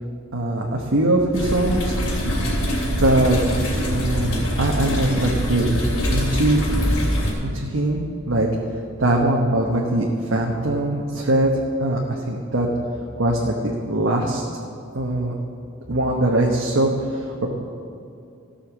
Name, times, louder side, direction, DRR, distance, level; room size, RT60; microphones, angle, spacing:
voice 1, 0.3-2.4 3.0-3.4 3.9-5.8 6.1-6.7 7.4-8.5 9.0-11.5 11.8-12.7 13.2-14.4 14.9-15.3 15.9-17.5, right 1 dB, 65° right, -1 dB, 1.1 m, -21 dB
sound 1, 1.3-7.3, equal, 85° left, 2.8 m, -23 dB
14.5 x 5.7 x 7.1 m, 2.6 s
head